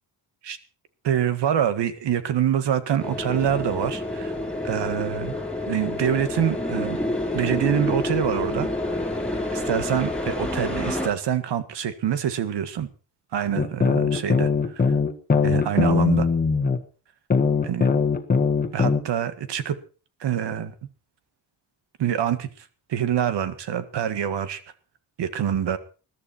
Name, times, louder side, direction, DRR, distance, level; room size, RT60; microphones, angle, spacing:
voice 1, 1.0-4.3 4.6-5.4 5.7-7.0 7.3-8.7 9.5-12.9 13.3-14.9 15.4-16.3 17.6-17.8 18.7-19.8 20.2-20.7 22.0-22.5 22.9-24.6 25.2-25.8, right 9 dB, 90° right, 12 dB, 1.8 m, -25 dB
sound 1, 3.0-11.1, left 1 dB, 5° left, 3.6 m, -28 dB
sound 2, 13.6-16.8 17.3-19.0, left 5 dB, 20° left, 1.5 m, -20 dB
21.5 x 12.0 x 4.4 m, 0.37 s
wide cardioid pair, 170°, 40 cm